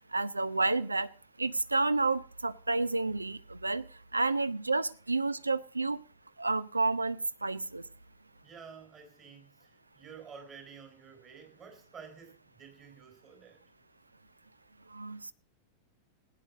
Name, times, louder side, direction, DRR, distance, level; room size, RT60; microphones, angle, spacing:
voice 1, 0.1-1.1 1.4-6.0 6.4-7.8 14.9-15.3, right 3 dB, 80° right, 0.5 m, -30 dB
voice 2, 8.4-13.6, right 6 dB, 30° right, 4.6 m, -51 dB
16.5 x 9.3 x 5.1 m
figure-of-eight pair, 90°, 0 cm